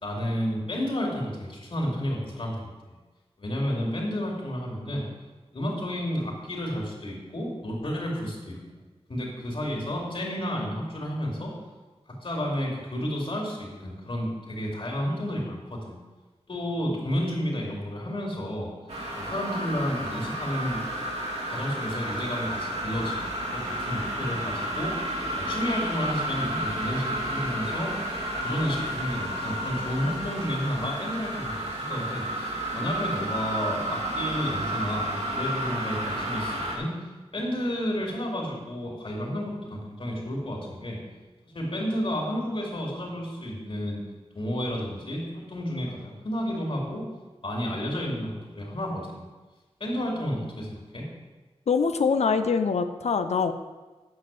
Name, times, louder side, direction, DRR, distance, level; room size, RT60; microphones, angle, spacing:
voice 1, 0.0-2.7 3.4-5.1 5.5-8.6 9.1-11.5 12.2-16.0 16.5-18.7 19.1-20.8 21.5-23.2 23.5-24.9 25.4-27.9 28.4-36.9 37.3-41.0 41.5-44.0 44.3-47.1 47.4-49.2 49.8-51.1, equal, 55° left, -1 dB, 2.9 m, -31 dB
sound 1, 18.9-36.8, right 1 dB, 85° right, 2.3 m, -31 dB
voice 2, 51.7-53.5, left 5 dB, 90° left, 10 dB, 0.7 m, -24 dB
8.8 x 6.3 x 7.6 m, 1.3 s
wide cardioid pair, 80°, 11 cm